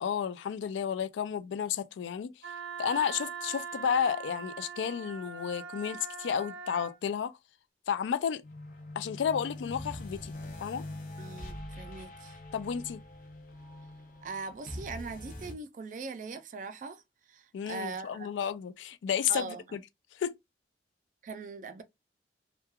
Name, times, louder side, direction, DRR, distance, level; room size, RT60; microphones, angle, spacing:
voice 1, 0.0-7.3 7.9-8.4 9.0-10.3 10.6-10.8 12.5-13.0 17.5-19.8 20.1-20.3, left 8 dB, 80° left, 0.3 m, -32 dB
Wind instrument woodwind instrument, 2.4-7.0, right 6 dB, 80° right, 0.6 m, -42 dB
sound 1, 8.4-15.5, left 1 dB, 45° left, 0.6 m, -43 dB
voice 2, 11.2-12.4 14.2-18.3 19.3-19.6 21.2-21.8, right 4 dB, 45° right, 0.3 m, -41 dB
3.0 x 2.2 x 2.2 m
head